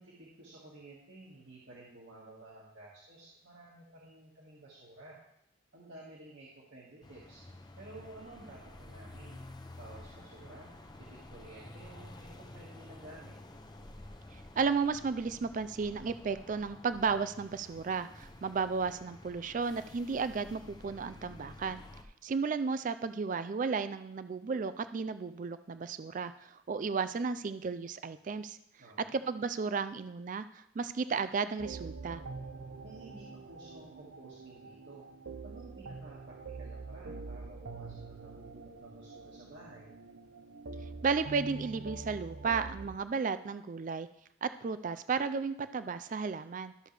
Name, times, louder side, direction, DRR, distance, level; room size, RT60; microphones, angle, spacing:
voice 1, 0.0-5.2 5.7-7.4 7.8-9.4 9.8-10.7 11.0-13.4 28.8-29.2 32.8-35.1 35.4-39.9, right 2 dB, 70° right, -6 dB, 1.9 m, -53 dB
sound 1, 7.0-22.0, left 1 dB, 20° left, 0.6 m, -51 dB
voice 2, 14.6-21.8 22.2-28.6 29.1-32.2 41.0-44.1 44.4-46.7, right 5 dB, 40° right, 12 dB, 0.3 m, -33 dB
sound 2, 31.6-43.0, right 4 dB, 90° right, 0.7 m, -45 dB
13.0 x 6.4 x 3.3 m, 0.76 s
head